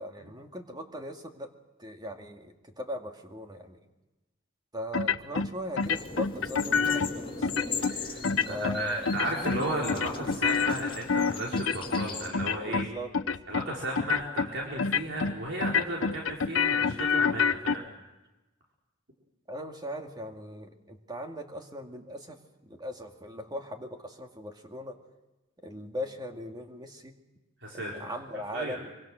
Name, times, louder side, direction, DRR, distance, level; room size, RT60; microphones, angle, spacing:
voice 1, 0.0-1.5 1.8-3.8 4.7-7.5 8.4-9.1 12.6-13.1 19.5-25.0 25.6-27.2 27.7-28.9, equal, 20° right, 3 dB, 2.3 m, -39 dB
sound 1, 4.9-5.5 5.8-7.1 7.4-7.9 8.2-8.8 9.1-9.6 9.9-12.1 12.3-12.9 13.1-13.7 14.0-14.5 14.8-15.3 15.6-17.8, left 5 dB, 70° left, 0.8 m, -27 dB
sound 2, 5.8-12.3, left 4 dB, 25° left, 6.9 m, -38 dB
voice 2, 7.8-12.8 13.5-17.8 27.6-27.9 28.5-28.8, right 1 dB, 65° right, -2 dB, 4.6 m, -34 dB
25.0 x 24.5 x 6.4 m, 1.0 s
head